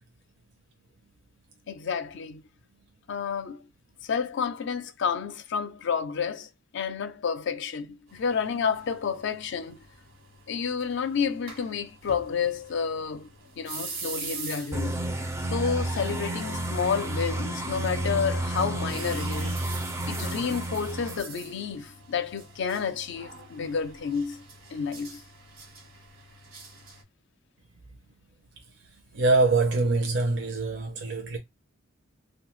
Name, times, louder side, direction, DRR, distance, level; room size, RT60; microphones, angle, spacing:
voice 1, 1.7-2.4 3.1-3.6 4.0-9.8 10.5-13.3 13.6-15.0 15.5-19.6 20.1-24.4 24.7-25.2, left 6 dB, 60° left, 0.4 m, -30 dB
sound 1, 8.1-27.0, right 4 dB, 80° right, 1.1 m, -45 dB
sound 2, 14.7-21.2, right 1 dB, 15° right, 0.4 m, -31 dB
voice 2, 29.1-31.4, right 3 dB, 60° right, 0.6 m, -24 dB
2.6 x 2.2 x 3.0 m
head